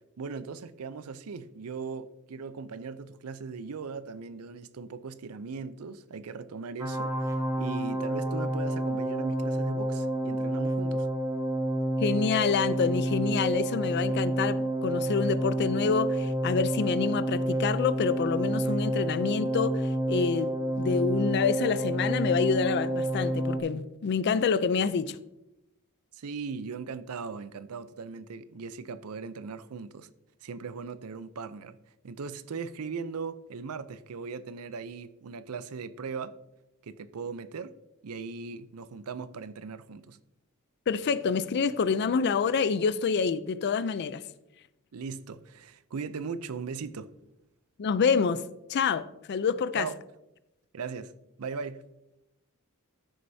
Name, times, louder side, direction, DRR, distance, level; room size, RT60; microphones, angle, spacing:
voice 1, 0.2-11.1 26.1-30.1 30.4-31.8 32.0-36.3 36.8-37.7 38.0-40.2 44.9-47.1 49.7-50.0 50.7-51.1 51.4-51.8, right 5 dB, 75° right, 0.5 m, -38 dB
sound 1, 6.8-23.6, right 1 dB, 15° right, 0.6 m, -29 dB
voice 2, 12.0-20.5 20.8-25.2 40.9-44.2 47.8-48.4 48.7-49.9, left 5 dB, 50° left, 0.4 m, -27 dB
14.0 x 6.4 x 2.7 m
head